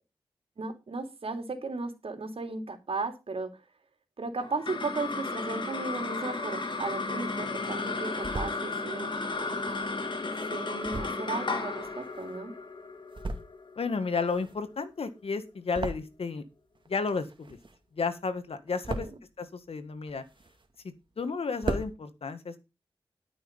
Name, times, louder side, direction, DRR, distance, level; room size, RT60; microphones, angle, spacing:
voice 1, 0.6-3.5 4.2-9.1 10.5-12.5 18.9-19.1, right 3 dB, 70° right, 5 dB, 3.2 m, -35 dB
sound 1, 4.4-15.0, left 3 dB, 55° left, 2.9 m, -34 dB
sound 2, 6.5-7.4 7.9-8.6 9.3-12.6 13.0-13.8 14.0-16.5 16.8-18.0 18.3-19.3 19.9-20.9 21.2-21.3 21.5-21.9, right 2 dB, 55° right, 2.2 m, -38 dB
voice 2, 13.8-16.4 16.9-17.6 17.9-19.1 19.4-20.2 20.8-22.6, left 4 dB, 75° left, 10 dB, 1.7 m, -32 dB
13.0 x 6.4 x 5.4 m, 0.26 s
cardioid pair, 55°, 10 cm